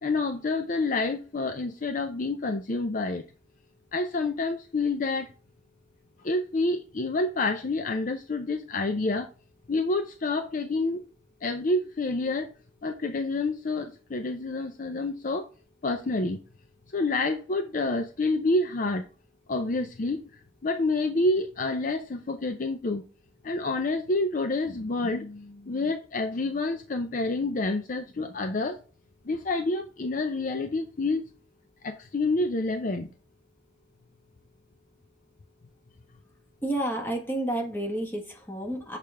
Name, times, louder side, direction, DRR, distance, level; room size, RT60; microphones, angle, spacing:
voice 1, 0.0-3.2 3.9-5.3 6.2-9.3 9.7-11.0 11.4-12.5 12.8-15.5 15.8-16.4 16.9-19.1 19.5-20.2 20.6-23.0 23.4-28.8 29.3-31.2 31.8-33.1, left 2 dB, 45° left, 6 dB, 0.5 m, -28 dB
voice 2, 36.6-39.0, right 1 dB, 10° left, 1 dB, 1.4 m, -30 dB
6.6 x 4.9 x 3.3 m, 0.36 s
head